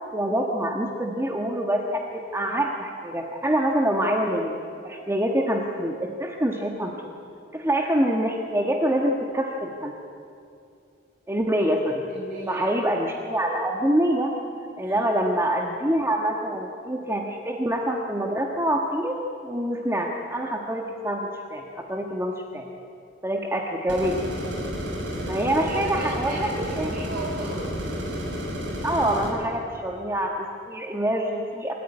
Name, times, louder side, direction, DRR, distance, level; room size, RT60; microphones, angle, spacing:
voice 1, 0.1-4.5 4.8-6.9 7.5-9.9 11.3-12.0 12.5-14.3 14.8-22.7 23.2-24.2 25.3-26.9 28.8-31.7, right 1 dB, 15° right, 1 dB, 1.5 m, -25 dB
voice 2, 12.1-12.8 14.8-15.0 25.1-25.3 25.6-27.7, right 1 dB, 50° right, -6 dB, 4.9 m, -36 dB
sound 1, 23.9-29.3, equal, 75° right, 6.4 m, -31 dB
28.0 x 14.5 x 9.7 m, 2.5 s
head